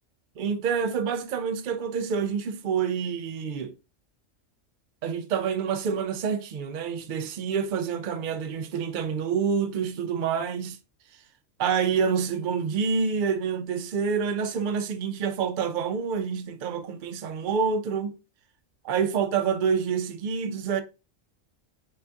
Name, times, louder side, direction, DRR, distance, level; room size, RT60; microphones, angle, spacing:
voice 1, 0.4-3.7 5.0-10.8 11.6-18.1 18.8-20.8, right 6 dB, 65° right, 0.5 m, -27 dB
3.8 x 2.6 x 3.3 m
omnidirectional pair, 1.3 m